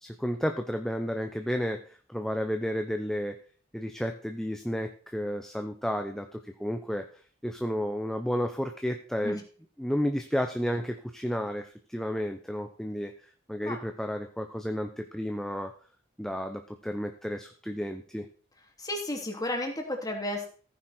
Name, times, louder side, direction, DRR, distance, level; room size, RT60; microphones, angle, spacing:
voice 1, 0.0-3.4 3.7-7.1 7.4-9.4 9.8-13.1 13.5-15.7 16.2-18.3, equal, ahead, 5 dB, 0.9 m, -32 dB
voice 2, 18.8-20.5, left 1 dB, 20° left, 1 dB, 3.1 m, -32 dB
15.0 x 9.5 x 4.4 m, 0.42 s
head